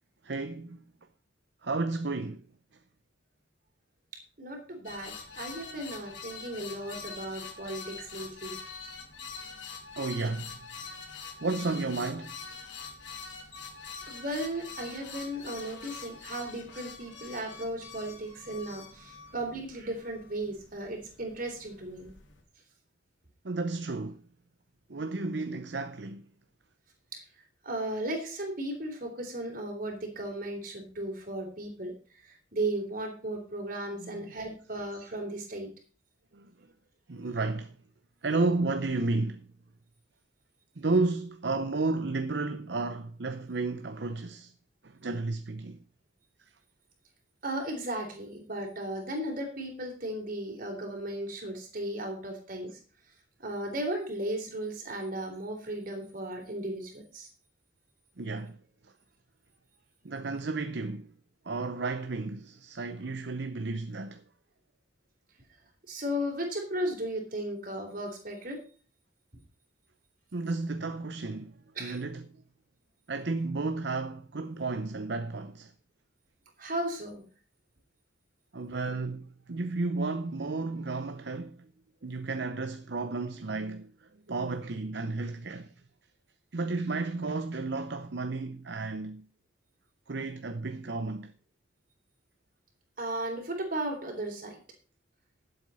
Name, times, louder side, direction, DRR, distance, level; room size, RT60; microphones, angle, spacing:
voice 1, 0.2-0.8 1.6-2.4 10.0-10.6 11.4-12.4 23.4-24.2 24.9-26.2 34.0-34.3 36.3-36.7 37.1-37.8 38.2-39.5 40.8-44.5 44.8-45.8 58.2-58.6 60.0-61.1 61.4-64.2 70.3-72.4 73.1-75.7 78.5-81.7 82.0-85.7 86.5-89.2 90.1-91.3, right 3 dB, 60° right, 0.7 m, -32 dB
voice 2, 4.4-8.6 14.1-22.1 27.1-27.2 27.6-31.9 32.2-35.7 47.4-52.8 53.4-57.3 65.9-68.6 71.8-72.0 76.6-77.2 93.0-94.6, right 1 dB, 45° right, 3.6 m, -35 dB
sound 1, 4.8-22.4, left 5 dB, 80° left, 3.4 m, -45 dB
12.0 x 7.9 x 5.4 m
head